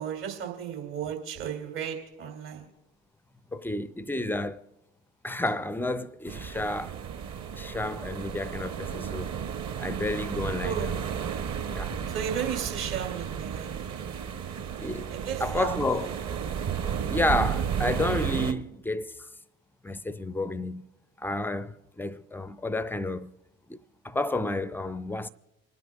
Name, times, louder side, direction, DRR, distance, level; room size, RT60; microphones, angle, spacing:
voice 1, 0.0-2.7 10.6-10.9 12.1-13.7 15.1-16.1, right 8 dB, 65° right, 2.6 m, -34 dB
voice 2, 3.5-4.7 5.2-6.9 7.5-9.4 9.8-11.0 11.7-12.0 14.8-16.1 17.1-19.3 19.8-20.8 21.2-23.3 23.7-23.8 24.0-25.3, left 1 dB, 5° left, 0.4 m, -31 dB
sound 1, 6.3-18.5, right 7 dB, 40° right, 1.1 m, -33 dB
27.0 x 9.5 x 2.4 m
figure-of-eight pair, 55°, 41 cm